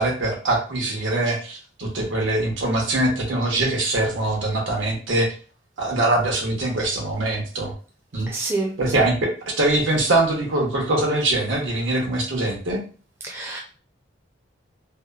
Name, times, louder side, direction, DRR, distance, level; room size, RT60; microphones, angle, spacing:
voice 1, 0.0-5.3 5.8-7.7 8.1-8.3 8.8-12.8, right 2 dB, 85° right, -1 dB, 0.9 m, -23 dB
voice 2, 8.3-9.1 13.2-13.6, right 3 dB, 15° right, -1 dB, 0.4 m, -28 dB
2.8 x 2.0 x 2.3 m, 0.39 s
head